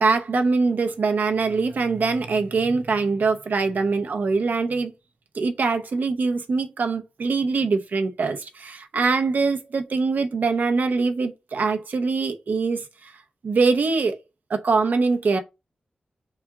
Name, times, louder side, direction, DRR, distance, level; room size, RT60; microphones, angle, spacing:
voice 1, 0.0-4.9 5.3-13.1 13.4-14.2 14.5-15.4, right 4 dB, 70° right, 0.8 m, -23 dB
4.1 x 2.4 x 4.7 m
wide cardioid pair, 120°, 3 cm